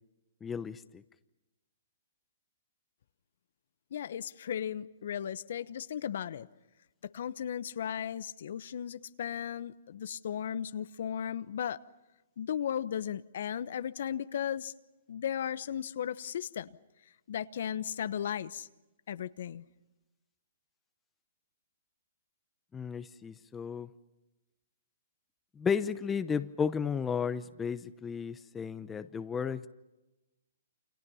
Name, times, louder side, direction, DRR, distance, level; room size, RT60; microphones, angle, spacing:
voice 1, 0.4-1.0 22.7-23.9 25.6-29.7, left 6 dB, 15° left, 12 dB, 0.8 m, -33 dB
voice 2, 3.9-6.5 7.0-11.8 12.4-14.7 15.1-16.7 17.3-18.7 19.1-19.6, left 9 dB, 60° left, 14 dB, 0.9 m, -36 dB
29.0 x 27.0 x 5.6 m, 1.0 s
hypercardioid pair, 140°, 0 cm